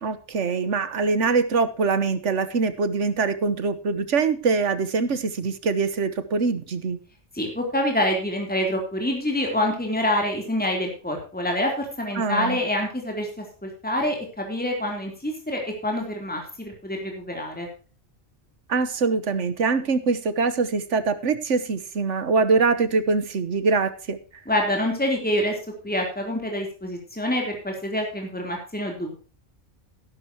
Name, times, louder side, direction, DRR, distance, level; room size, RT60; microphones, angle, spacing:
voice 1, 0.0-7.0 12.1-12.6 18.7-24.2, right 4 dB, 85° right, 12 dB, 1.5 m, -23 dB
voice 2, 7.3-17.7 24.5-25.5 25.8-29.1, left 1 dB, 10° left, 1 dB, 3.4 m, -26 dB
14.5 x 12.0 x 2.9 m, 0.37 s
omnidirectional pair, 1.2 m